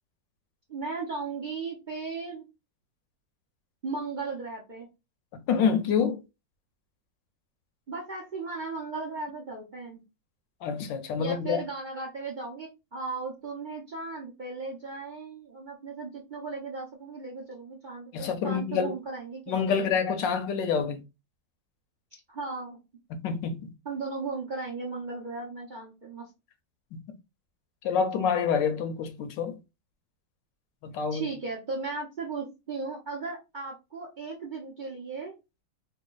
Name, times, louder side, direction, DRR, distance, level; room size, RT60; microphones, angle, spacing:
voice 1, 0.7-2.5 3.8-4.9 7.9-10.0 11.2-19.9 22.1-22.8 23.8-26.3 31.1-35.3, right 4 dB, 70° right, 0.4 m, -36 dB
voice 2, 5.3-6.2 10.6-11.6 18.1-18.9 19.5-21.0 23.1-23.7 26.9-27.0 27.8-29.6 30.8-31.3, left 6 dB, 75° left, 1.2 m, -27 dB
3.2 x 2.2 x 3.8 m
omnidirectional pair, 2.1 m